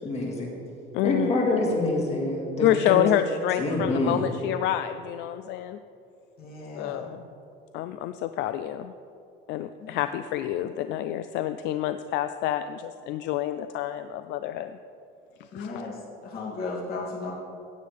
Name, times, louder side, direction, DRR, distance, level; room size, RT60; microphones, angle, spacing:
voice 1, 0.0-0.5 1.0-3.0 3.6-4.2, left 2 dB, 35° left, -2 dB, 2.2 m, -26 dB
voice 2, 0.9-1.3 2.6-5.8 6.8-7.2 7.7-8.9 9.5-14.7 15.5-15.9, left 11 dB, 70° left, 10 dB, 0.4 m, -28 dB
voice 3, 6.4-7.1 9.8-9.9 15.5-15.9 16.2-17.3, left 3 dB, 50° left, -4 dB, 2.6 m, -35 dB
16.0 x 9.4 x 3.4 m, 2.7 s
cardioid pair, 175°, 19 cm